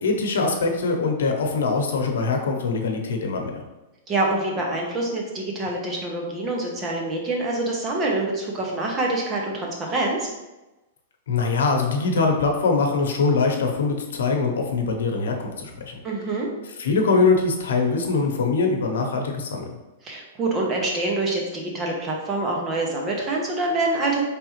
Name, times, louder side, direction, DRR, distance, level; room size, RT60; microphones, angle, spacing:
voice 1, 0.0-3.5 11.3-15.9 16.8-19.7, left 4 dB, 85° left, 3 dB, 0.9 m, -22 dB
voice 2, 4.1-10.3 16.0-16.5 20.0-24.2, right 2 dB, 20° right, -1 dB, 0.8 m, -26 dB
4.9 x 3.4 x 3.1 m, 1.1 s
supercardioid pair, 165°, 0 cm